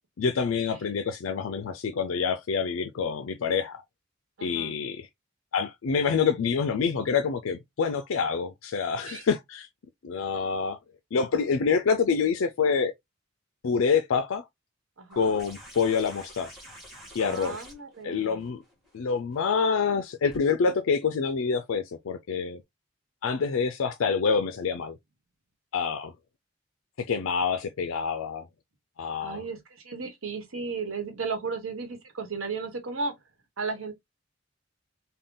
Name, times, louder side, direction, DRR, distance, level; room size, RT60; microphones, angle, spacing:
voice 1, 0.2-3.8 4.4-5.1 5.5-9.7 10.0-10.8 11.1-12.9 13.6-14.5 15.2-16.6 17.1-17.6 18.0-18.6 18.9-22.6 23.2-25.0 25.7-26.1 27.0-28.5 29.0-29.4, left 5 dB, 75° left, 0.4 m, -26 dB
voice 2, 4.4-4.7 9.1-9.2 15.0-15.3 17.2-18.5 29.2-33.1 33.6-33.9, right 4 dB, 75° right, 1.1 m, -35 dB
sound 1, 15.1-20.4 21.8-21.9, equal, ahead, 1.7 m, -48 dB
3.6 x 2.2 x 3.8 m
head